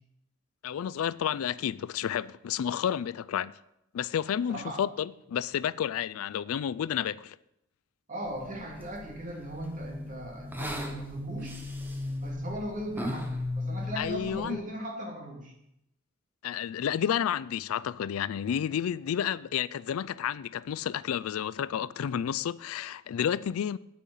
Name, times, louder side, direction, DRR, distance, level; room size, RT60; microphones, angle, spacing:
voice 1, 0.6-3.5 3.9-7.4 14.0-14.6 16.4-23.8, left 9 dB, 80° left, 0.3 m, -31 dB
voice 2, 4.5-4.8 8.1-11.6 12.2-13.3 13.5-15.5, equal, 40° right, 2.6 m, -38 dB
sound 1, 8.3-14.6, left 1 dB, 10° right, 1.1 m, -37 dB
9.2 x 8.3 x 5.5 m
head